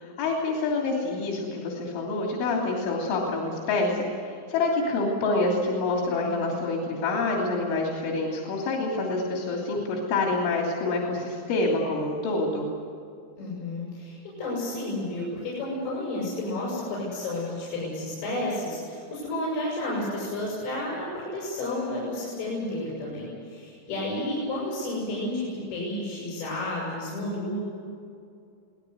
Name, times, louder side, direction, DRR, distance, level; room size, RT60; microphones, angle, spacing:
voice 1, 0.0-12.7, left 3 dB, 85° left, -1 dB, 5.5 m, -27 dB
voice 2, 13.4-27.6, left 1 dB, 70° left, -5 dB, 9.7 m, -31 dB
26.0 x 18.5 x 8.0 m, 2.5 s
omnidirectional pair, 5.3 m